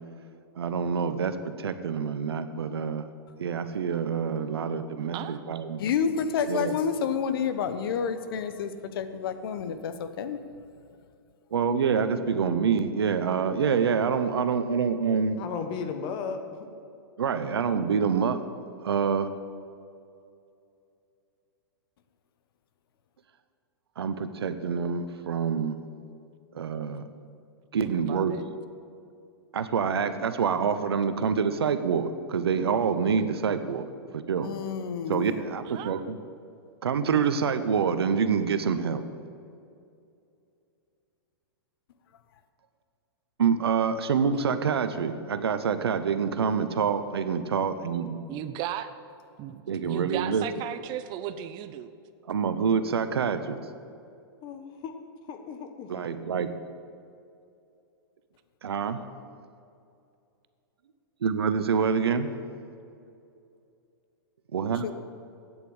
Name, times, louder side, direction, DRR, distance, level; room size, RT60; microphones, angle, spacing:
voice 1, 0.6-3.0 3.4-5.8 6.5-6.7 11.5-15.4 17.2-18.4 18.8-19.3 24.0-25.8 26.5-27.0 27.7-28.4 29.5-33.9 34.1-34.5 35.1-36.2 36.8-39.0 43.4-48.2 49.7-50.4 52.3-53.6 55.9-56.5 58.6-59.0 61.2-62.3 64.5-64.9, right 6 dB, 85° right, 10 dB, 0.8 m, -26 dB
voice 2, 5.8-10.4 34.4-35.4, left 6 dB, 65° left, 11 dB, 0.9 m, -29 dB
voice 3, 15.4-16.7 54.4-54.9 55.3-55.9, left 6 dB, 40° left, 7 dB, 1.3 m, -35 dB
voice 4, 27.8-28.5 35.7-36.0 48.3-48.9 49.4-51.9, right 11 dB, 35° right, 12 dB, 0.6 m, -36 dB
9.0 x 8.1 x 8.0 m, 2.6 s
hypercardioid pair, 130°, 13 cm